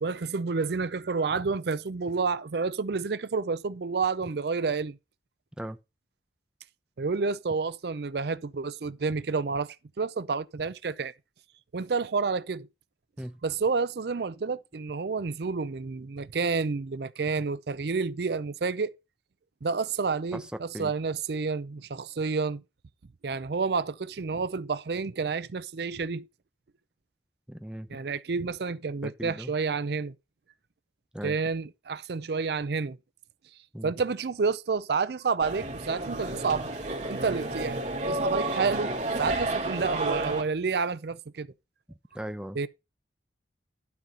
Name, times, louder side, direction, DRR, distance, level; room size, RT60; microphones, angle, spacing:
voice 1, 0.0-5.0 7.0-11.1 11.7-12.7 13.4-18.9 19.6-22.6 23.2-26.2 27.9-30.1 31.2-33.0 33.8-36.7 37.1-41.5 42.6-42.7, right 4 dB, 60° right, 0.5 m, -29 dB
voice 2, 27.5-27.9 29.0-29.5 31.1-31.4 33.7-33.9 41.9-42.6, equal, 5° right, 0.6 m, -38 dB
sound 1, 35.4-40.4, right 2 dB, 40° right, 2.3 m, -31 dB
12.0 x 4.1 x 5.3 m
head